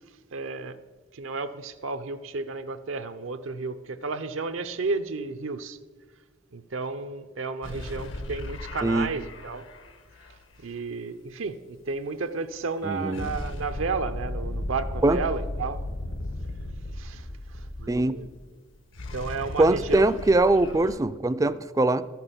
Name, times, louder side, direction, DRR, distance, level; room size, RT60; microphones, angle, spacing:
voice 1, 0.3-0.8 1.1-5.8 6.5-9.7 10.6-15.8 16.9-18.3 19.1-20.0, right 4 dB, 80° right, 10 dB, 0.6 m, -32 dB
sound 1, 7.6-10.6 13.1-18.5 18.8-21.0, left 1 dB, 70° left, 1.1 m, -36 dB
voice 2, 12.8-13.3 15.0-15.2 17.9-18.1 19.6-22.0, right 2 dB, 15° right, 14 dB, 0.3 m, -22 dB
13.0 x 6.0 x 8.0 m, 1.5 s
head